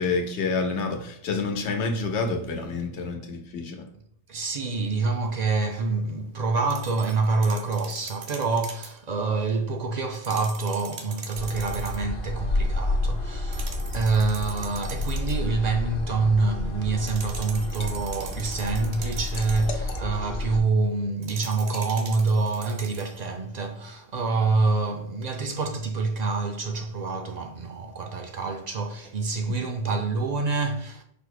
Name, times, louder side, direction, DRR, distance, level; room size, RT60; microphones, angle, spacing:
voice 1, 0.0-3.8, left 4 dB, 85° left, 1.0 m, -28 dB
voice 2, 4.3-31.0, right 3 dB, 60° right, 0.4 m, -26 dB
sound 1, 6.7-9.0 10.1-12.1 13.5-15.5 17.1-19.8 21.2-23.2, right 5 dB, 75° right, 1.0 m, -42 dB
sound 2, 11.4-20.6, left 1 dB, 60° left, 1.0 m, -30 dB
Liquid, 17.1-17.9 18.3-20.4 20.8-21.0 21.6-21.9, left 2 dB, 45° left, 0.4 m, -40 dB
5.1 x 2.0 x 4.6 m
omnidirectional pair, 1.1 m